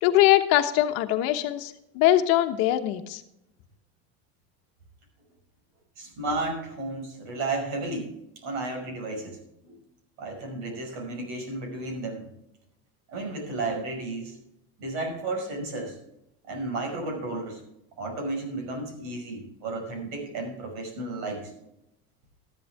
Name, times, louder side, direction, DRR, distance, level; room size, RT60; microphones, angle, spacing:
voice 1, 0.0-3.2, left 14 dB, 55° left, 8 dB, 1.1 m, -22 dB
voice 2, 6.0-8.1 8.4-9.4 9.6-9.8 10.2-12.2 13.1-14.4 14.8-16.0 16.4-17.6 18.0-21.5, right 2 dB, 65° right, 3 dB, 5.5 m, -33 dB
13.5 x 11.0 x 3.5 m, 0.82 s
cardioid pair, 155°, 31 cm